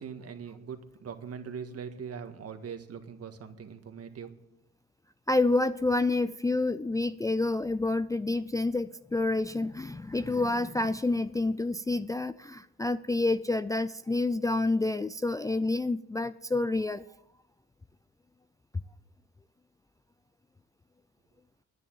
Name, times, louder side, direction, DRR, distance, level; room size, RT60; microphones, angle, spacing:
voice 1, 0.0-4.3, right 6 dB, 55° right, 7 dB, 1.7 m, -41 dB
voice 2, 5.3-17.0, left 2 dB, 10° left, 10 dB, 0.4 m, -28 dB
10.5 x 9.8 x 8.8 m, 0.83 s
cardioid pair, 90°, 30 cm